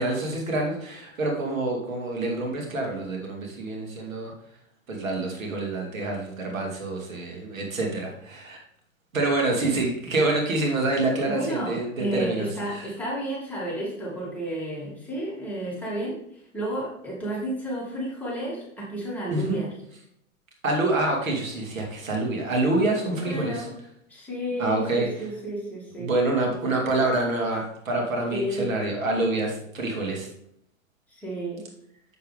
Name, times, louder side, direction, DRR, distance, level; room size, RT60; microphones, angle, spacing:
voice 1, 0.0-4.3 4.9-8.6 9.1-12.9 19.3-19.6 20.6-23.7 24.6-25.1 26.0-30.3, right 2 dB, 90° right, 0 dB, 2.5 m, -27 dB
voice 2, 11.3-16.2 16.5-19.7 23.2-23.7 24.1-26.1 28.3-28.8 31.1-31.6, right 1 dB, 5° left, -7 dB, 2.9 m, -31 dB
7.7 x 6.8 x 3.6 m, 0.74 s
hypercardioid pair, 110°, 39 cm